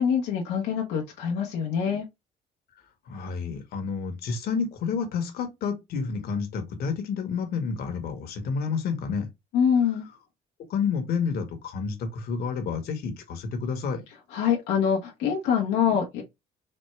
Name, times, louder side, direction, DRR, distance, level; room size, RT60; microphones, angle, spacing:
voice 1, 0.0-2.0 9.5-10.1 14.3-16.2, left 7 dB, 85° left, 1.0 m, -24 dB
voice 2, 3.1-9.3 10.7-14.0, left 5 dB, 65° left, 1.2 m, -30 dB
4.3 x 2.1 x 3.2 m
cardioid pair, 110°, 17 cm